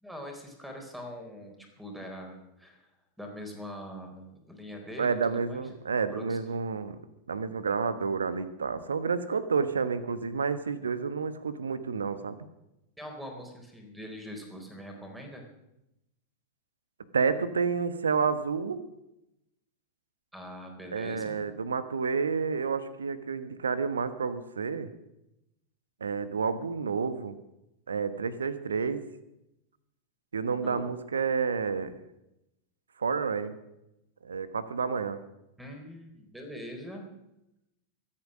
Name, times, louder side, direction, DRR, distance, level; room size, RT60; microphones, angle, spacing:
voice 1, 0.0-2.8 3.2-5.2 5.5-5.6 6.1-6.4 13.0-15.4 20.3-21.4 30.6-30.9 35.6-37.1, equal, 5° right, 3 dB, 4.0 m, -43 dB
voice 2, 5.0-7.0 7.3-12.4 17.1-18.8 20.9-24.9 26.0-27.4 27.9-29.0 30.3-32.0 33.0-33.6 34.2-35.2, right 5 dB, 70° right, 14 dB, 1.2 m, -30 dB
24.0 x 8.8 x 6.3 m, 0.90 s
figure-of-eight pair, 90°, 0 cm